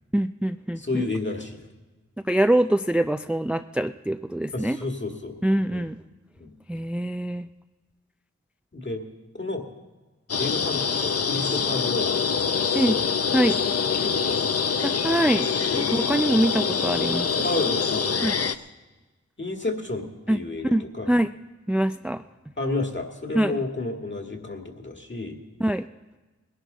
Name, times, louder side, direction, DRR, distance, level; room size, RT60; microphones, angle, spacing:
voice 1, 0.1-1.1 2.3-4.8 5.4-6.0 6.7-7.5 12.7-12.9 13.3-13.6 14.8-15.5 15.7-17.5 18.2-18.4 20.3-20.4 20.6-21.3 21.7-22.2 23.3-23.6 25.6-25.9, right 1 dB, 5° right, 9 dB, 0.3 m, -24 dB
voice 2, 0.8-1.7 4.5-5.4 5.7-5.9 6.4-6.5 8.7-9.0 9.3-9.6 10.4-13.0 13.5-13.6 13.9-14.6 15.7-15.9 17.4-18.6 19.4-21.1 22.6-25.4, left 2 dB, 40° left, 3 dB, 2.0 m, -31 dB
sound 1, 10.3-18.5, left 6 dB, 55° left, 0.6 m, -25 dB
20.0 x 11.0 x 4.0 m, 1.2 s
wide cardioid pair, 50°, 29 cm